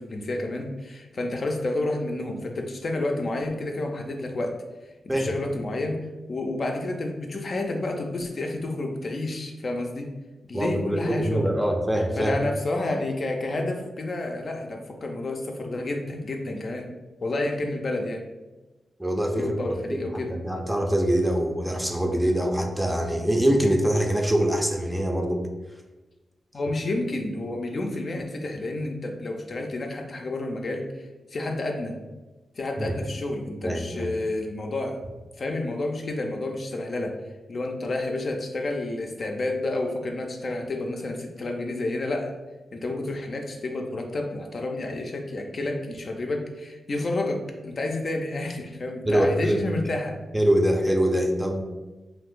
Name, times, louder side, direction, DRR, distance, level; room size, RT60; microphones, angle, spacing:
voice 1, 0.0-4.5 5.0-6.0 6.3-10.1 10.5-11.5 12.2-16.9 17.2-18.2 19.3-20.3 26.5-31.0 31.3-32.0 32.6-35.0 35.4-37.1 37.5-42.3 42.7-50.2, left 2 dB, 55° left, 2 dB, 0.4 m, -30 dB
voice 2, 10.5-12.3 19.0-25.4 32.8-32.9 33.6-34.1 49.1-49.6 50.3-51.6, right 1 dB, 10° right, 2 dB, 0.5 m, -24 dB
2.6 x 2.5 x 3.6 m, 1.1 s
cardioid pair, 60°, 0 cm